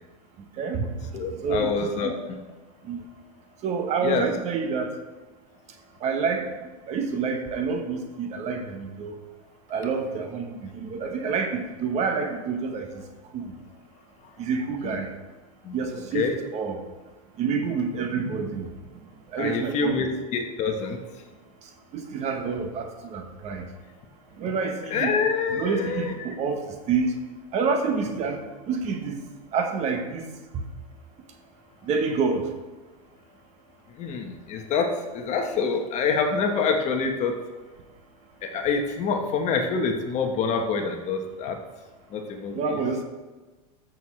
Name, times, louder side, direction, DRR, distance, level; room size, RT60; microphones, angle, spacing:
voice 1, 0.6-0.9 1.4-2.1 2.9-3.0 3.6-4.9 6.0-6.5 6.9-9.2 9.7-12.9 13.3-13.5 14.4-15.1 15.7-16.8 17.4-18.7 19.3-20.1 21.9-23.7 24.4-25.1 25.5-27.1 27.5-28.4 28.7-29.2 29.5-30.2 30.5-30.6 31.9-32.5 42.5-43.0, right 5 dB, 35° right, 5 dB, 1.1 m, -28 dB
voice 2, 1.1-2.2 4.0-4.2 14.8-15.0 15.6-15.8 16.1-16.4 19.4-21.0 24.9-26.1 34.0-34.9 35.1-37.3 38.4-41.6 42.1-42.8, left 5 dB, 35° left, 4 dB, 1.2 m, -26 dB
13.5 x 6.3 x 3.2 m, 1.2 s
supercardioid pair, 135°, 19 cm